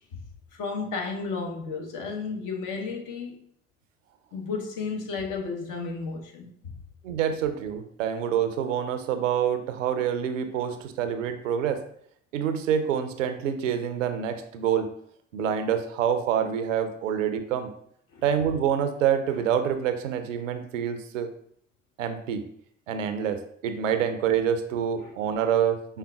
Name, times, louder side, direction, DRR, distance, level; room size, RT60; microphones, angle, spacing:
voice 1, 0.5-3.4 4.3-6.8 10.7-10.8 18.1-18.2 25.0-25.1 25.4-25.6, left 4 dB, 55° left, 2 dB, 1.0 m, -33 dB
voice 2, 7.0-11.8 12.3-14.9 15.3-17.7 18.2-21.3 22.0-22.4 22.9-26.0, right 8 dB, 80° right, 9 dB, 0.5 m, -26 dB
5.5 x 3.4 x 2.3 m, 0.68 s
figure-of-eight pair, 50°, 37 cm